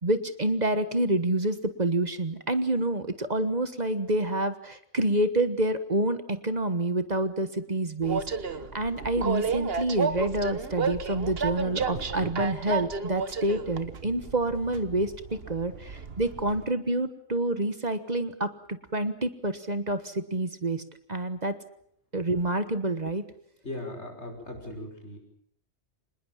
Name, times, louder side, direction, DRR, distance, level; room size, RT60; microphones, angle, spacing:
voice 1, 0.0-8.2 8.7-15.1 15.5-20.8 21.1-21.5 22.1-23.2, right 1 dB, 40° right, 11 dB, 1.5 m, -28 dB
Train, 8.0-16.6, right 5 dB, 60° right, 1.5 m, -32 dB
voice 2, 23.6-25.2, left 1 dB, 75° left, 3 dB, 6.3 m, -38 dB
26.0 x 20.5 x 7.5 m, 0.67 s
omnidirectional pair, 1.1 m